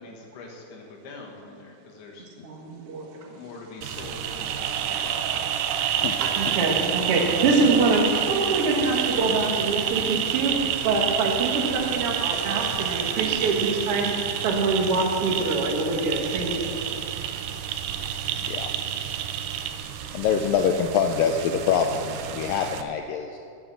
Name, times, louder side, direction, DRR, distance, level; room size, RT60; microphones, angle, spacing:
voice 1, 0.0-2.3 3.2-5.3, left 3 dB, 75° left, -1 dB, 3.5 m, -43 dB
voice 2, 2.4-3.2 6.2-10.6 10.8-16.7, right 3 dB, 55° right, 1 dB, 1.7 m, -25 dB
sound 1, 3.8-22.8, right 9 dB, 85° right, 1.8 m, -29 dB
voice 3, 20.1-23.4, left 7 dB, 90° left, 4 dB, 2.0 m, -24 dB
13.5 x 7.6 x 6.9 m, 2.6 s
omnidirectional pair, 4.7 m